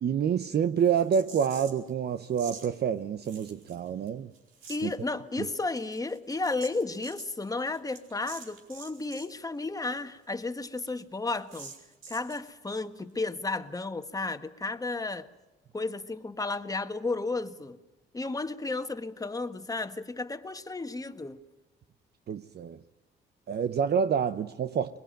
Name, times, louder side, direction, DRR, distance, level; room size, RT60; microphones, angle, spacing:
voice 1, 0.0-4.3 4.8-4.9 22.3-22.8 23.5-25.0, right 7 dB, 55° right, 0.9 m, -28 dB
sound 1, 0.8-1.9 2.3-2.7 3.2-4.1 4.3-4.9 5.5-9.3 9.6-9.7 10.0-10.1 10.4-10.5 10.8-10.9 11.5-12.5, right 5 dB, 90° right, 4.9 m, -47 dB
voice 2, 4.7-11.7 12.1-15.3 15.7-17.8 18.1-21.4, left 3 dB, 20° left, 1.5 m, -33 dB
23.0 x 21.5 x 9.1 m
cardioid pair, 90°, 20 cm